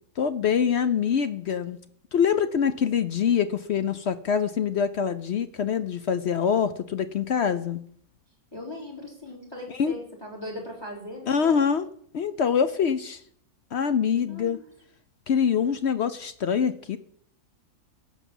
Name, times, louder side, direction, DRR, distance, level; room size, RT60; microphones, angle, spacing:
voice 1, 0.2-1.8 2.1-7.8 9.7-10.0 11.3-11.9 12.1-13.2 13.7-14.6 15.3-17.0, left 7 dB, 60° left, 12 dB, 0.7 m, -24 dB
voice 2, 8.5-11.6 14.2-14.6, left 1 dB, 15° left, 0 dB, 3.9 m, -39 dB
17.0 x 6.1 x 7.2 m, 0.64 s
omnidirectional pair, 1.7 m